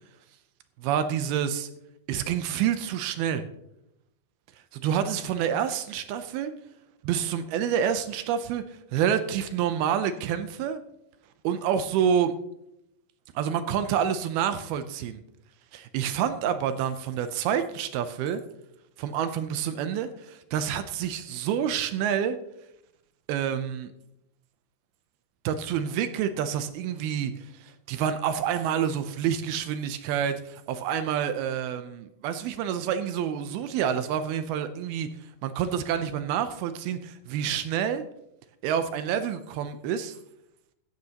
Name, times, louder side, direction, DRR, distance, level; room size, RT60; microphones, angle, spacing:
voice 1, 0.8-1.7 2.1-3.4 4.7-6.5 7.0-10.8 11.4-12.3 13.4-15.2 15.7-18.4 19.0-22.4 23.3-23.9 25.4-35.1 35.4-38.1 38.6-40.2, right 8 dB, 80° right, 10 dB, 2.4 m, -28 dB
16.0 x 13.0 x 2.9 m, 0.83 s
omnidirectional pair, 4.7 m